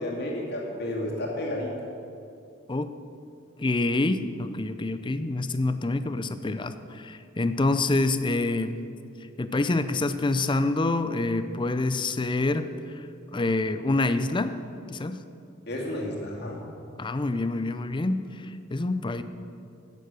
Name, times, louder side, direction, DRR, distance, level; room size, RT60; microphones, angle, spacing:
voice 1, 0.0-1.7 15.7-16.6, left 1 dB, 55° left, -2 dB, 2.4 m, -31 dB
voice 2, 3.6-8.8 9.4-13.0 13.3-14.6 14.9-15.2 17.0-19.2, left 2 dB, 25° left, 11 dB, 0.5 m, -27 dB
11.5 x 9.5 x 6.3 m, 2.5 s
head